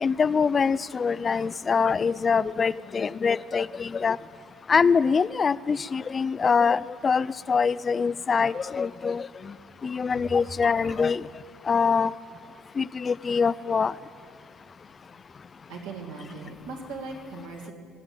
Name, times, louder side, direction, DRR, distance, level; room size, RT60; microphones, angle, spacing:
voice 1, 0.0-4.2 4.7-9.5 9.8-11.3 11.7-12.1 12.8-13.9, left 5 dB, 35° left, 19 dB, 0.3 m, -24 dB
voice 2, 15.7-17.7, right 3 dB, 80° right, -1 dB, 2.4 m, -39 dB
17.5 x 8.0 x 8.9 m, 2.4 s
hypercardioid pair, 55°, 0 cm